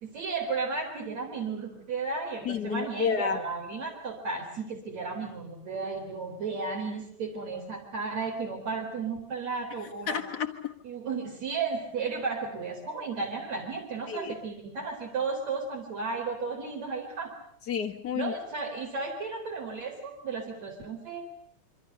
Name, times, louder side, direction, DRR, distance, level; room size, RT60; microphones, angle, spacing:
voice 1, 0.0-10.2 10.8-17.3 18.2-21.3, right 4 dB, 60° right, 0 dB, 5.2 m, -34 dB
voice 2, 2.4-3.4 10.1-10.7 14.1-14.3 17.7-18.4, left 7 dB, 50° left, 3 dB, 1.2 m, -30 dB
27.0 x 25.0 x 6.7 m, 0.62 s
omnidirectional pair, 3.5 m